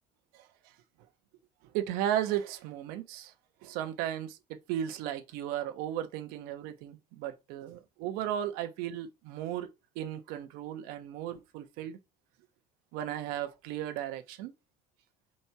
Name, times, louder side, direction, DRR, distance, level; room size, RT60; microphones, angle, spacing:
voice 1, 1.7-3.3 3.6-9.7 9.9-12.0 12.9-14.5, right 11 dB, 80° right, 1.1 m, -35 dB
5.3 x 4.4 x 4.6 m
cardioid pair, 140°, 15 cm